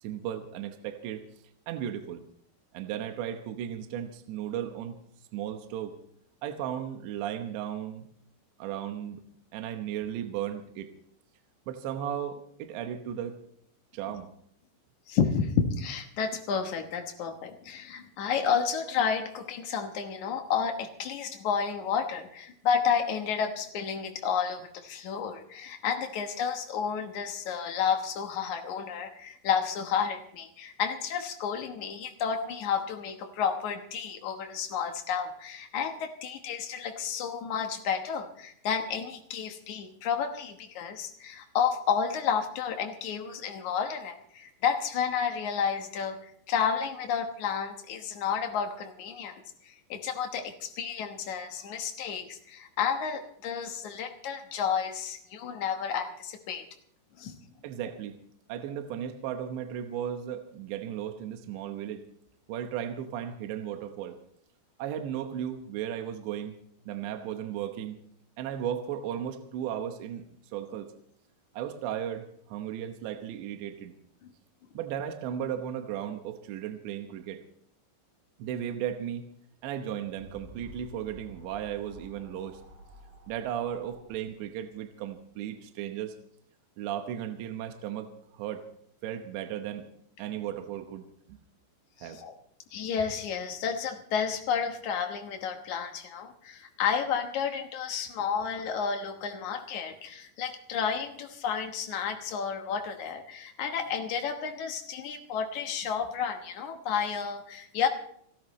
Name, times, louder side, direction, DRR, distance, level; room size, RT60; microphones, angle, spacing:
voice 1, 0.0-1.3 1.7-2.2 2.7-5.0 5.3-6.0 6.4-8.1 8.6-9.2 9.5-10.9 11.7-13.4 13.9-14.3 57.6-58.2 58.5-62.0 62.5-64.2 64.8-66.6 66.9-68.0 68.4-70.2 70.5-70.9 71.5-73.9 74.7-77.4 78.4-79.2 79.6-82.6 83.3-86.2 86.8-88.6 89.0-89.9 90.2-91.4 92.0-92.2, right 10 dB, 75° right, 6 dB, 3.2 m, -35 dB
voice 2, 15.1-46.2 46.5-56.6 57.2-57.4 92.0-92.3 92.7-107.9, left 7 dB, 85° left, 4 dB, 1.6 m, -31 dB
sound 1, 80.1-85.3, equal, 50° right, 7.2 m, -51 dB
29.0 x 13.0 x 3.1 m, 0.67 s
omnidirectional pair, 5.3 m